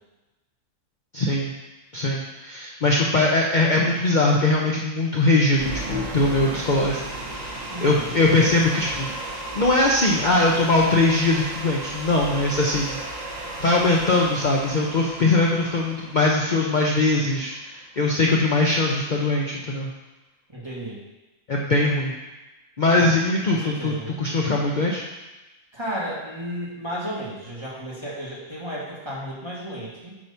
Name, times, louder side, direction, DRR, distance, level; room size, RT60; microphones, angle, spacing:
voice 1, 1.1-1.5 1.9-9.1 9.5-13.0 13.6-19.9 21.5-22.1 22.8-25.0, left 2 dB, 45° left, -2 dB, 0.7 m, -21 dB
sound 1, 5.5-17.7, right 2 dB, 35° right, 0.8 m, -35 dB
voice 2, 7.7-8.1 20.5-21.0 22.9-23.1 23.5-24.1 25.7-30.2, equal, 20° right, -6 dB, 1.6 m, -33 dB
8.5 x 3.1 x 5.4 m, 1.1 s
omnidirectional pair, 1.4 m